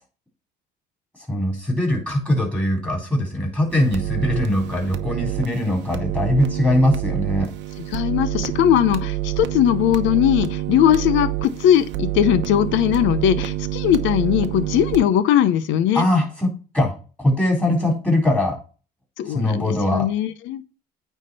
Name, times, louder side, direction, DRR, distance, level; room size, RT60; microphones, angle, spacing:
voice 1, 1.3-7.5 15.9-18.6 19.3-20.1, left 1 dB, 5° left, 3.9 m, -21 dB
sound 1, 3.7-15.0, right 15 dB, 65° right, 0.9 m, -27 dB
voice 2, 7.9-16.0 19.2-20.6, left 11 dB, 75° left, 0.8 m, -19 dB
9.2 x 3.7 x 5.4 m
cardioid pair, 110°, 20 cm